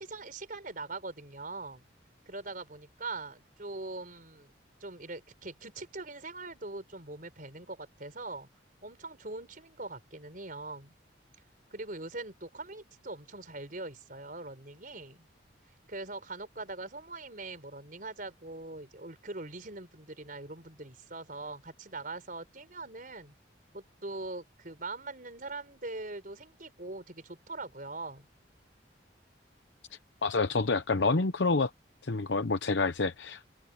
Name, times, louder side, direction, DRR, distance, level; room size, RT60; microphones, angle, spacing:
voice 1, 0.0-1.8 2.3-4.5 4.8-8.5 8.8-10.9 11.7-15.3 15.9-23.3 23.7-28.3, right 2 dB, 45° right, 4.8 m, -42 dB
voice 2, 30.2-31.7 32.0-33.5, left 3 dB, 70° left, 0.8 m, -28 dB
open air
head